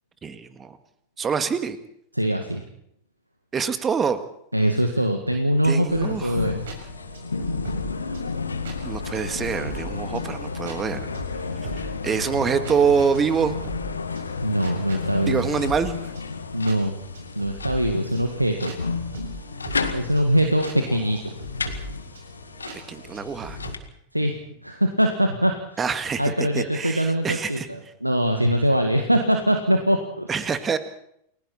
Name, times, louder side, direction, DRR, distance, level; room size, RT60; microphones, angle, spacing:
voice 1, 0.2-0.8 1.2-1.8 3.5-4.2 5.6-6.5 8.8-11.1 12.0-13.6 15.3-16.0 22.9-23.6 25.8-27.7 30.3-30.8, right 6 dB, 20° right, 10 dB, 1.9 m, -25 dB
voice 2, 2.1-2.6 4.5-6.6 14.4-15.5 16.5-17.0 17.4-18.7 19.9-21.2 24.1-25.8 26.2-30.5, equal, 90° right, 5 dB, 1.8 m, -22 dB
sound 1, 5.9-23.8, left 4 dB, 75° left, 1.9 m, -32 dB
sound 2, 6.3-23.7, right 2 dB, 60° right, 6.6 m, -41 dB
29.5 x 21.5 x 4.3 m, 0.74 s
figure-of-eight pair, 90°, 0 cm